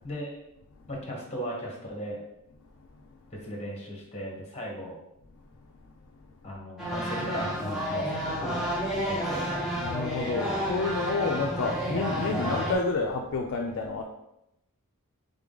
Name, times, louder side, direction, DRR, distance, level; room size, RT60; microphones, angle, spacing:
voice 1, 0.0-0.3 0.9-2.2 3.3-5.0 6.4-9.5, equal, 30° left, -1 dB, 1.2 m, -37 dB
sound 1, 6.8-12.7, equal, ahead, 1.0 m, -31 dB
voice 2, 9.7-14.0, left 4 dB, 60° left, 1 dB, 0.4 m, -29 dB
3.8 x 3.6 x 3.7 m, 0.85 s
head